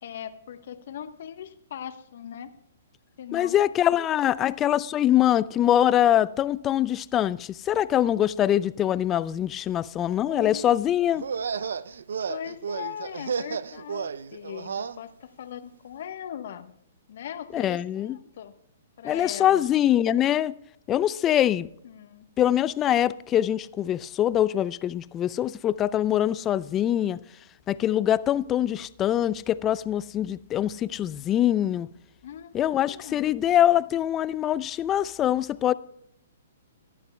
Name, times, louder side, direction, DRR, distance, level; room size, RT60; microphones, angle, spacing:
voice 1, 0.0-2.5 3.2-3.6 4.0-4.3 10.3-10.6 12.3-16.7 17.1-18.5 19.0-19.7 21.6-22.3 32.2-33.4, left 9 dB, 60° left, 1.1 m, -39 dB
voice 2, 3.3-11.3 17.5-18.2 19.0-20.6 20.9-21.7 22.4-27.2 27.7-31.9 32.5-35.7, left 11 dB, 20° left, 0.4 m, -23 dB
sound 1, 11.1-15.0, right 6 dB, 80° right, 0.5 m, -32 dB
18.0 x 12.0 x 2.2 m
hypercardioid pair, 135°, 0 cm